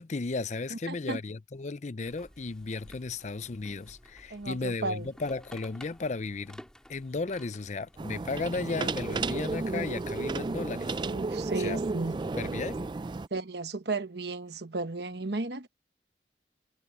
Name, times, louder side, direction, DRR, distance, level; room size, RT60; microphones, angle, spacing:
voice 1, 0.0-6.6 6.9-10.9 11.6-11.8 12.4-12.9, left 3 dB, 40° left, 0.5 m, -35 dB
voice 2, 0.7-1.2 4.3-5.1 11.0-12.2 13.3-15.7, right 3 dB, 60° right, 1.2 m, -34 dB
sound 1, 2.0-10.3, equal, 5° left, 4.3 m, -54 dB
sound 2, 8.0-13.3, right 3 dB, 25° right, 0.3 m, -33 dB
head